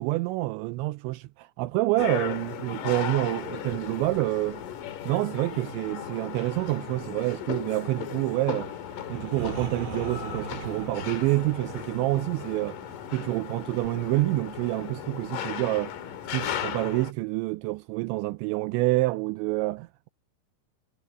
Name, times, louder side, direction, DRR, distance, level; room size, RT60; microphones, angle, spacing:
voice 1, 0.0-4.6 5.0-8.7 9.1-12.8 13.1-15.9 16.3-20.1, right 20 dB, 85° right, 2.8 m, -27 dB
sound 1, 2.0-17.1, left 10 dB, 60° left, 2.5 m, -36 dB
sound 2, 3.7-9.4 10.6-16.9, right 2 dB, 35° right, 9.3 m, -55 dB
sound 3, 8.6-14.3, right 4 dB, 50° right, 4.8 m, -41 dB
omnidirectional pair, 5.5 m